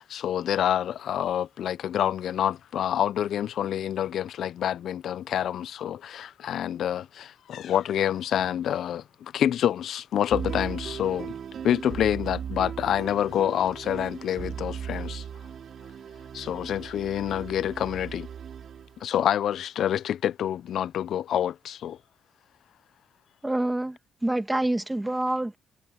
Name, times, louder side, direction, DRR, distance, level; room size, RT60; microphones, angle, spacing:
voice 1, 0.0-11.3 11.6-15.2 16.3-18.3 19.0-22.0, left 10 dB, 70° left, 0.4 m, -27 dB
sound 1, 10.3-19.0, right 8 dB, 60° right, 5.0 m, -37 dB
voice 2, 23.4-25.5, right 1 dB, 10° right, 2.0 m, -27 dB
cardioid pair, 90°, 0 cm